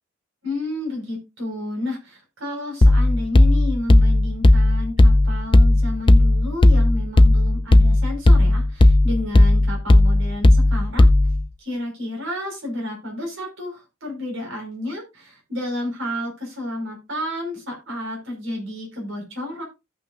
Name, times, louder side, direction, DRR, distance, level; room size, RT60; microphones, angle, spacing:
voice 1, 0.4-11.0 11.6-19.6, left 1 dB, 70° right, 0 dB, 5.2 m, -31 dB
sound 1, 2.8-11.5, left 1 dB, 25° left, 0.5 m, -15 dB
17.0 x 5.7 x 2.6 m, 0.24 s
head